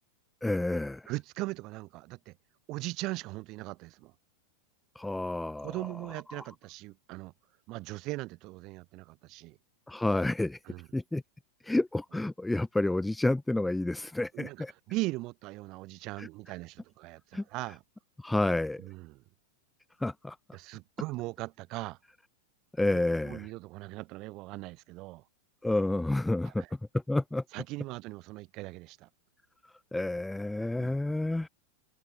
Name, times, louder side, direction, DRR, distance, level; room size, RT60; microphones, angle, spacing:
voice 1, 0.4-1.1 5.0-5.7 6.3-6.4 9.9-10.6 10.9-11.2 11.6-14.7 16.2-16.3 17.3-17.4 18.2-18.9 20.0-20.4 22.8-23.5 25.6-26.6 26.9-27.4 29.6-31.5, left 2 dB, 5° left, 0.4 m, -30 dB
voice 2, 1.1-2.4 2.7-4.1 5.6-7.3 7.7-9.6 10.7-10.9 14.3-17.8 18.8-19.2 20.5-22.0 22.9-25.2 26.4-26.7 27.5-29.1 30.7-31.0, right 21 dB, 40° right, 2.8 m, -39 dB
figure-of-eight pair, 90°, 0 cm